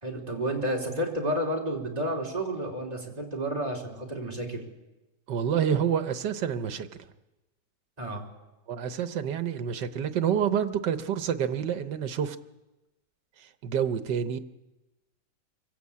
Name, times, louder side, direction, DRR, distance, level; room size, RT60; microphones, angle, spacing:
voice 1, 0.0-4.6 8.0-8.3, right 1 dB, 20° right, -1 dB, 3.5 m, -31 dB
voice 2, 5.3-6.9 8.7-12.4 13.4-14.4, right 8 dB, 80° right, 10 dB, 1.6 m, -28 dB
24.0 x 13.5 x 8.5 m, 1.0 s
omnidirectional pair, 1.8 m